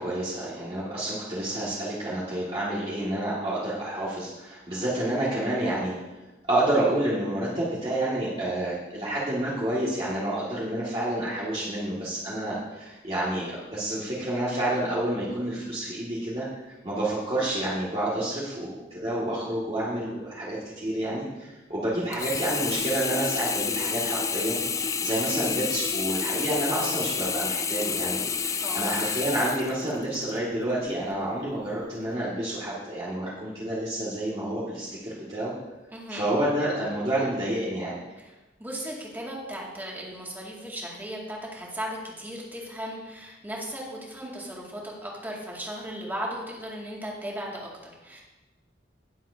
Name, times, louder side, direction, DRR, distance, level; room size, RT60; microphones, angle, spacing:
voice 1, 0.0-5.9 6.5-24.6 25.0-35.5 36.1-37.9, right 1 dB, 30° right, -9 dB, 2.0 m, -29 dB
Sink (filling or washing), 22.1-30.4 30.9-31.0, left 6 dB, 20° left, 0.3 m, -29 dB
voice 2, 28.6-28.9 35.9-36.3 38.6-48.2, equal, 10° right, -4 dB, 2.2 m, -36 dB
18.5 x 7.4 x 2.8 m, 1.1 s
head